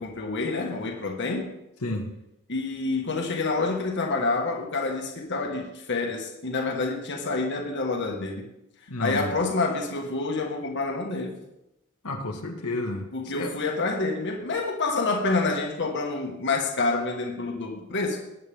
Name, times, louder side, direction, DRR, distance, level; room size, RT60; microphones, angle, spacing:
voice 1, 0.0-1.5 2.5-8.5 9.0-11.4 13.1-18.2, left 3 dB, 55° left, 1.7 m, -28 dB
voice 2, 8.9-9.3 12.0-13.5, left 2 dB, 90° left, 1.8 m, -31 dB
19.5 x 8.6 x 3.6 m
head